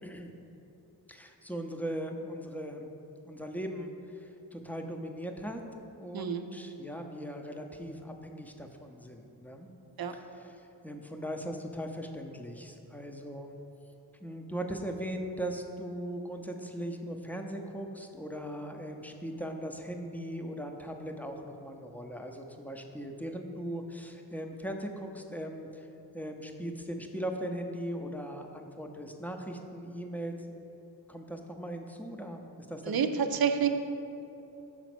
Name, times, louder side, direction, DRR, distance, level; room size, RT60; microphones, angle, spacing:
voice 1, 1.1-2.9 3.3-9.7 10.1-13.6 14.2-25.9 26.1-30.3 31.1-33.4, equal, 5° left, 3 dB, 0.7 m, -39 dB
voice 2, 32.9-33.7, right 7 dB, 50° right, 8 dB, 0.6 m, -28 dB
6.1 x 4.0 x 6.1 m, 2.9 s
cardioid pair, 40°, 46 cm